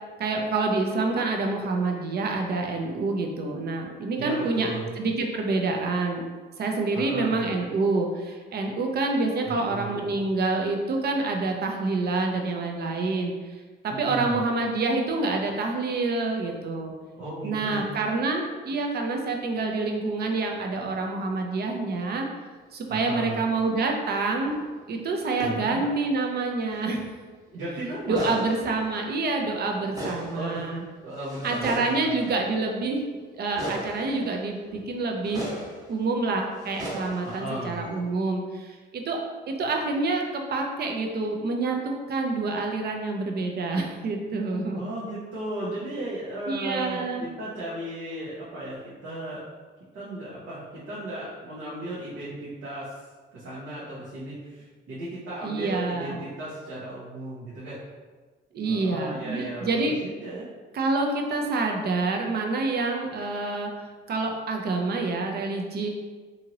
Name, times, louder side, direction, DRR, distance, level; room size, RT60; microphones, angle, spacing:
voice 1, 0.2-4.7 5.0-6.2 6.6-13.3 13.8-16.9 17.4-22.3 22.7-24.6 24.9-27.1 28.1-30.8 31.4-33.0 33.3-35.5 35.9-41.8 42.1-44.8 46.5-47.2 55.4-56.2 58.5-59.9 60.7-63.7 64.1-65.9, right 3 dB, 55° right, 2 dB, 0.5 m, -27 dB
voice 2, 4.2-5.0 6.9-7.5 9.4-10.2 13.9-14.4 17.1-17.8 22.9-23.4 25.4-25.8 27.5-28.4 30.3-30.6 31.0-32.2 37.2-37.8 44.7-49.4 49.9-52.9 53.3-57.8 58.6-60.5, right 1 dB, 80° right, -9 dB, 0.9 m, -35 dB
sound 1, 24.5-24.8 25.4-25.7 25.9-26.0 26.6-27.0 27.3-27.4 27.6-29.5 29.8-32.9 33.5-38.0, equal, 15° right, 1.0 m, -39 dB
2.7 x 2.6 x 2.9 m, 1.4 s
cardioid pair, 90°, 20 cm